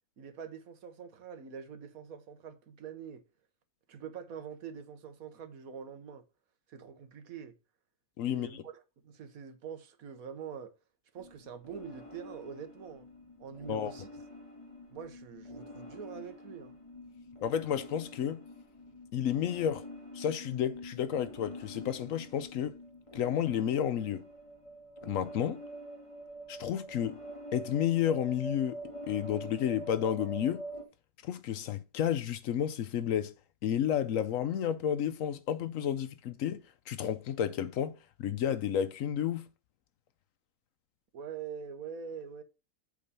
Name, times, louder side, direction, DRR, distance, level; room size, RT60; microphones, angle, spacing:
voice 1, 0.2-3.2 3.9-6.2 6.7-7.6 8.3-10.7 11.1-13.1 13.4-14.1 14.9-16.8 41.1-42.4, right 7 dB, 70° right, 1.4 m, -44 dB
voice 2, 8.2-8.6 13.7-13.9 17.4-18.4 19.1-19.8 20.1-22.8 23.1-24.2 25.0-25.6 26.5-27.2 27.5-30.6 31.2-33.3 33.6-39.4, left 9 dB, 70° left, 0.9 m, -31 dB
sound 1, 11.2-30.8, equal, 25° left, 1.2 m, -46 dB
8.4 x 3.8 x 5.4 m
omnidirectional pair, 1.6 m